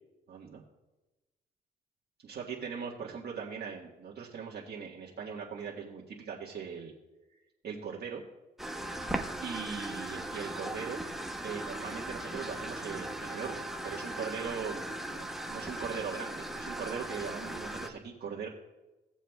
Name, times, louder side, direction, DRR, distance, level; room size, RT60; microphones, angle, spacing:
voice 1, 0.3-0.6 2.2-6.9 7.6-8.2 9.4-11.0 11.4-18.5, right 6 dB, 55° right, -4 dB, 1.6 m, -40 dB
sound 1, 8.6-17.9, right 1 dB, ahead, 0.8 m, -38 dB
18.5 x 7.2 x 2.4 m, 1.1 s
cardioid pair, 90°, 20 cm